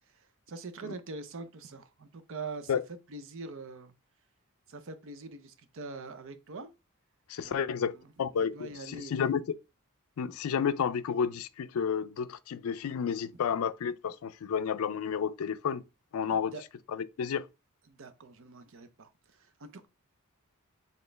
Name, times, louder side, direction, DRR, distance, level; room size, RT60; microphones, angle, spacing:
voice 1, 0.5-2.7 3.1-3.9 4.7-6.7 7.4-8.1 8.5-9.1 16.3-16.6 17.9-19.9, right 3 dB, 60° right, 0.7 m, -44 dB
voice 2, 7.3-9.4 10.2-15.8 16.1-16.5 16.9-17.5, left 7 dB, 70° left, 0.4 m, -31 dB
4.2 x 3.7 x 3.3 m
head